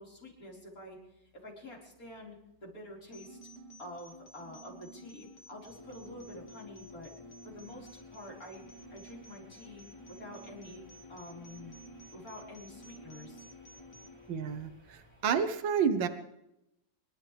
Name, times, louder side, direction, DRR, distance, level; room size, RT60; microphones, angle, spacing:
voice 1, 0.0-3.4 3.8-7.1 7.4-8.6 8.9-10.8 11.1-11.7 12.1-13.4, left 1 dB, 45° left, -3 dB, 5.3 m, -48 dB
sound 1, 3.1-14.1, right 2 dB, 60° left, 2.8 m, -53 dB
sound 2, 5.7-15.4, left 3 dB, 5° left, 3.1 m, -55 dB
voice 2, 14.3-16.1, right 7 dB, 85° right, 9 dB, 1.8 m, -30 dB
26.5 x 13.0 x 3.4 m, 0.85 s
omnidirectional pair, 2.0 m